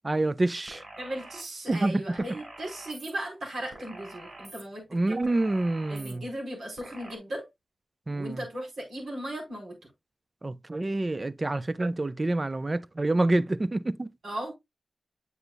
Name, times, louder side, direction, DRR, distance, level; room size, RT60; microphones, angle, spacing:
voice 1, 0.0-0.8 1.7-2.0 4.9-6.2 8.1-8.4 10.4-14.1, right 2 dB, 35° right, 0.4 m, -27 dB
sound 1, 0.7-1.5 2.2-3.1 3.7-4.6 5.2-6.1 6.8-7.2, right 2 dB, 60° right, 4.4 m, -46 dB
voice 2, 1.0-5.2 5.9-7.5 8.1-9.8 14.2-14.5, right 1 dB, 90° right, 4.4 m, -37 dB
7.9 x 6.9 x 2.4 m
cardioid pair, 55°, 0 cm